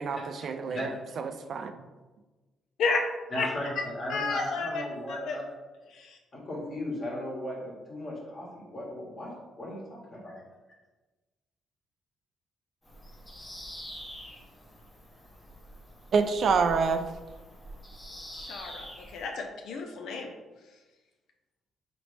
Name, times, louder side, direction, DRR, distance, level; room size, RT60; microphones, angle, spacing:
voice 1, 0.0-1.7 16.1-17.0, right 5 dB, 60° right, 8 dB, 0.3 m, -27 dB
voice 2, 3.3-5.4 6.3-10.4, left 1 dB, 40° left, -3 dB, 1.4 m, -36 dB
voice 3, 4.1-4.8 5.1-5.4 5.9-6.2 18.3-20.3, left 4 dB, 75° left, 3 dB, 0.4 m, -32 dB
Bird vocalization bird call bird song, 12.8-19.3, equal, 15° left, 0.8 m, -46 dB
4.0 x 3.0 x 3.2 m, 1.2 s
cardioid pair, 90°, 0 cm